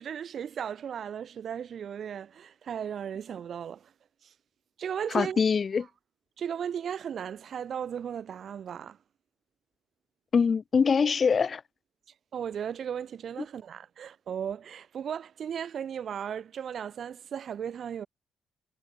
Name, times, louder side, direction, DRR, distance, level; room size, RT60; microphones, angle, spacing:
voice 1, 0.0-3.9 4.2-4.3 4.8-5.4 6.4-9.0 12.3-18.1, right 8 dB, 55° right, 2.6 m, -36 dB
voice 2, 5.1-5.9 10.3-11.6, left 5 dB, 45° left, 0.8 m, -24 dB
hypercardioid pair, 45°, 0 cm